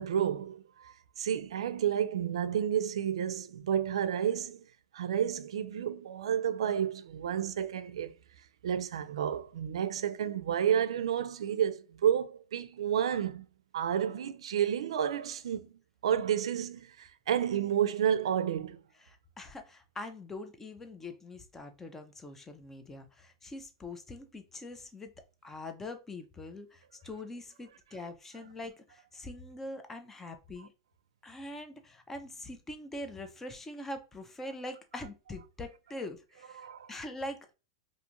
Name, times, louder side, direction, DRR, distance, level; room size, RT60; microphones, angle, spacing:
voice 1, 0.0-4.6 4.9-8.1 8.6-13.4 13.7-15.7 16.0-18.8 36.6-36.9, right 9 dB, 85° right, 0.4 m, -31 dB
voice 2, 19.0-25.1 25.4-30.7 31.2-37.5, left 2 dB, 10° left, 0.4 m, -43 dB
2.5 x 2.4 x 2.9 m
supercardioid pair, 145°, 3 cm